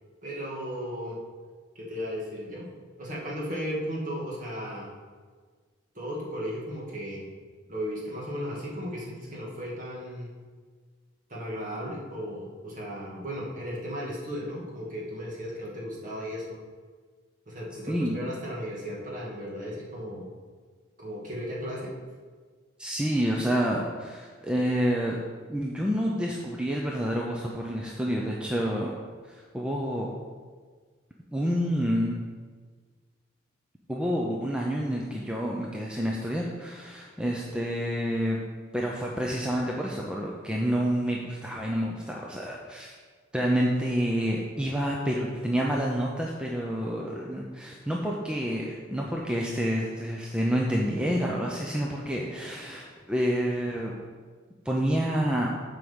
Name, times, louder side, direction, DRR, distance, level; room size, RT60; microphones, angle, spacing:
voice 1, 0.2-1.2 1.8-2.7 3.0-4.9 5.9-7.2 7.7-10.3 11.3-16.6 17.5-20.3 21.0-21.9 37.2-37.7, equal, 40° right, -4 dB, 2.1 m, -35 dB
voice 2, 17.9-18.2 22.8-25.2 25.5-28.9 29.3-30.1 31.3-32.2 33.9-38.5 38.7-42.9 43.3-54.0 54.6-55.5, equal, 5° right, -2 dB, 0.6 m, -28 dB
7.6 x 5.0 x 7.0 m, 1.5 s
head